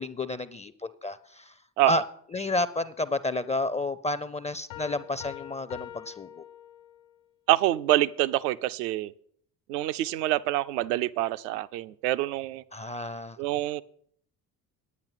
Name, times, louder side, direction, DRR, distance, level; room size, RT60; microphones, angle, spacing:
voice 1, 0.0-1.5 1.9-2.0 2.3-6.4 12.7-13.4, left 2 dB, 15° left, 14 dB, 0.4 m, -31 dB
Piano, 4.7-7.2, left 11 dB, 70° left, 1.1 m, -44 dB
voice 2, 7.5-9.1 9.7-12.6 13.4-13.8, right 15 dB, 75° right, 13 dB, 0.6 m, -26 dB
9.5 x 8.9 x 5.7 m, 0.64 s
hypercardioid pair, 55°, 48 cm